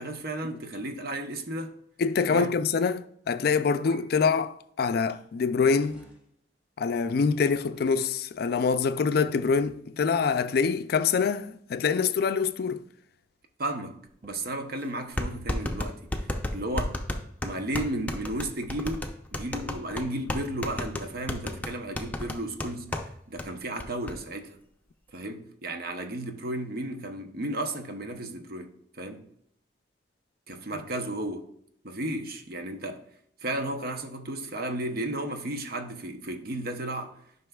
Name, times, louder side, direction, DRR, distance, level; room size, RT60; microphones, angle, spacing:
voice 1, 0.0-1.8 2.3-2.5 13.6-14.0 14.2-17.0 17.4-22.9 23.3-24.6 25.1-29.2 30.5-31.5 31.8-33.0 33.4-37.1, right 1 dB, 55° right, 0.8 m, -34 dB
voice 2, 2.0-6.0 6.8-12.8, left 5 dB, 60° left, 0.4 m, -25 dB
sound 1, 3.8-4.1 4.3-4.4 5.1-5.2 5.7-6.2 7.4-7.9 9.1-9.8, equal, 10° right, 1.7 m, -53 dB
sound 2, 14.2-14.3 15.2-23.1 23.4-23.5 23.8-24.1, left 1 dB, 10° left, 0.6 m, -32 dB
11.0 x 5.5 x 2.3 m
head